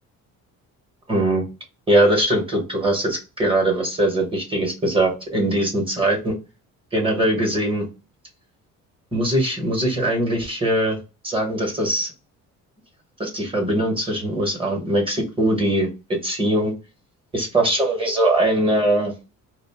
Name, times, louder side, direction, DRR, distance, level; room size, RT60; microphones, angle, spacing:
voice 1, 1.1-1.4 1.9-6.3 6.9-7.8 9.1-11.0 11.2-12.1 13.2-16.7 17.3-19.1, right 1 dB, 15° right, 1 dB, 0.9 m, -21 dB
2.4 x 2.1 x 3.4 m, 0.30 s
cardioid pair, 125°, 33 cm